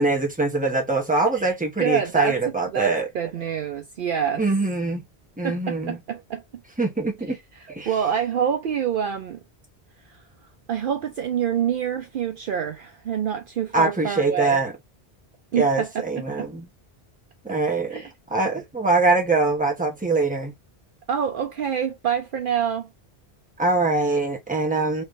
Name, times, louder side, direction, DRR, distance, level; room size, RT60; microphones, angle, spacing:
voice 1, 0.0-3.1 4.4-5.0 5.4-6.0 6.8-7.4 7.7-7.9 13.7-14.7 15.6-16.7 17.4-18.0 18.3-20.5 23.6-25.0, right 3 dB, 10° right, 1.1 m, -23 dB
voice 2, 1.8-2.4 2.7-4.4 5.4-6.4 7.9-9.4 10.1-10.2 10.7-14.6 15.5-16.5 17.5-17.6 17.9-18.1 21.1-22.9, right 8 dB, 60° right, 0.6 m, -26 dB
3.3 x 3.2 x 2.5 m
omnidirectional pair, 1.1 m